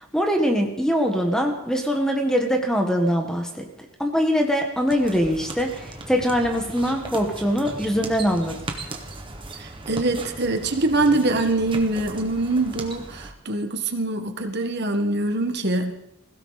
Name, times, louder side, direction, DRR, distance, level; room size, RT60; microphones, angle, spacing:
voice 1, 0.1-3.6 4.0-8.6, equal, 5° left, 3 dB, 1.4 m, -22 dB
sound 1, 4.7-13.3, right 2 dB, 25° right, 1.6 m, -37 dB
voice 2, 9.6-15.9, right 2 dB, 50° right, 6 dB, 1.6 m, -24 dB
21.0 x 16.5 x 4.2 m, 0.84 s
head